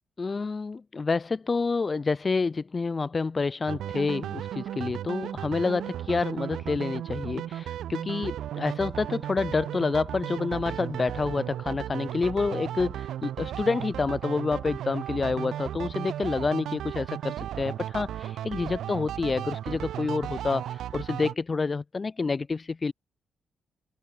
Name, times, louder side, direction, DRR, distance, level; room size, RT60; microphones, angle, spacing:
voice 1, 0.2-22.9, left 4 dB, 30° left, 4.1 m, -28 dB
sound 1, 3.7-21.3, right 11 dB, 85° right, 2.9 m, -35 dB
open air
cardioid pair, 130°, 0 cm